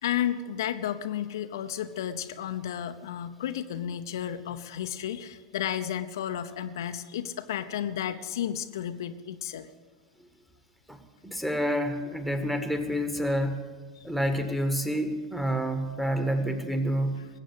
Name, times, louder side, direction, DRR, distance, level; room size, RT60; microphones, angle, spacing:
voice 1, 0.0-9.7 14.0-14.1, left 10 dB, 60° left, 8 dB, 0.7 m, -32 dB
voice 2, 10.9-13.7 14.0-17.3, equal, 5° right, 7 dB, 1.6 m, -28 dB
20.5 x 8.4 x 8.1 m, 1.4 s
figure-of-eight pair, 90°, 2 cm